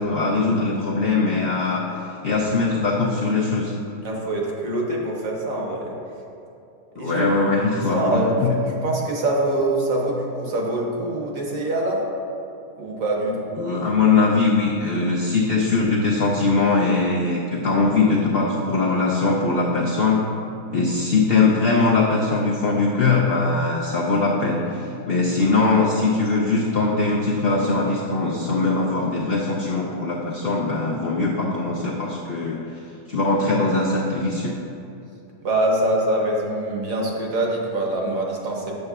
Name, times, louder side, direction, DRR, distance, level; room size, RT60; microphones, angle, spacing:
voice 1, 0.0-1.8 2.2-3.7 7.0-8.6 13.6-20.2 20.7-32.6 33.1-34.6, left 3 dB, 75° left, -4 dB, 0.5 m, -21 dB
voice 2, 4.0-5.9 7.0-7.2 7.7-12.0 12.8-13.5 27.5-27.9 35.4-38.8, right 1 dB, 60° right, -1 dB, 1.2 m, -24 dB
8.0 x 6.5 x 2.3 m, 2.7 s
omnidirectional pair, 1.7 m